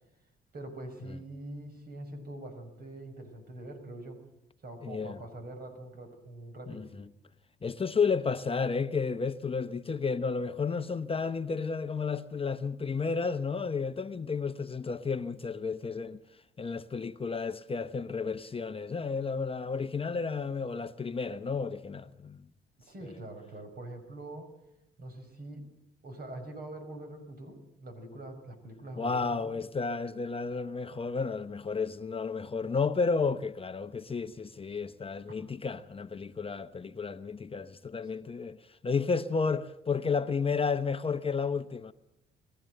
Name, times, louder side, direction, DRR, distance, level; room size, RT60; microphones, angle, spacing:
voice 1, 0.5-4.2 4.6-6.9 22.8-24.5 25.0-25.7 26.0-29.6 35.3-35.4, right 1 dB, 50° right, 6.0 m, -44 dB
voice 2, 4.8-5.2 6.7-7.1 7.6-16.2 16.6-22.4 23.0-23.2 29.0-41.9, left 5 dB, 30° left, 0.9 m, -32 dB
22.0 x 15.0 x 7.8 m
cardioid pair, 90°, 20 cm